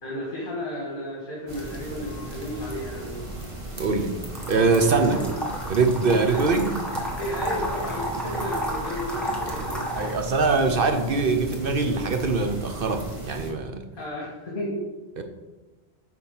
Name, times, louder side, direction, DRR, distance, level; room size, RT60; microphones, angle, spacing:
voice 1, 0.0-3.2 5.1-5.2 6.2-6.4 7.0-9.9 14.0-14.8, left 1 dB, 55° left, -4 dB, 1.9 m, -33 dB
sound 1, 1.5-13.5, right 1 dB, 30° right, 1.4 m, -37 dB
voice 2, 3.8-4.1 4.5-5.2 5.7-6.7 10.0-13.8 15.2-15.3, right 4 dB, 60° right, 6 dB, 1.0 m, -23 dB
sound 2, 4.3-10.1, equal, ahead, 1.3 m, -32 dB
8.6 x 4.3 x 5.6 m, 1.1 s
omnidirectional pair, 1.1 m